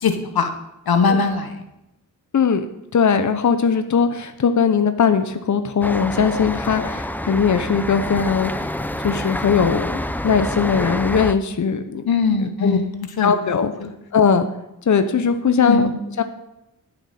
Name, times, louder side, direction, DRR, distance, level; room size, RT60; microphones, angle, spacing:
voice 1, 0.0-0.5 0.9-1.6 12.0-13.3 13.8-13.9 15.6-16.0, left 5 dB, 85° left, 7 dB, 1.2 m, -21 dB
voice 2, 2.3-2.7 2.9-8.7 9.0-12.0 12.4-12.8 13.2-13.7 14.1-14.5 14.9-15.9 16.2-16.3, left 6 dB, 50° left, 9 dB, 0.8 m, -19 dB
sound 1, 5.8-11.3, left 1 dB, 5° left, 0.5 m, -27 dB
20.0 x 6.7 x 4.3 m, 0.89 s
cardioid pair, 70°, 36 cm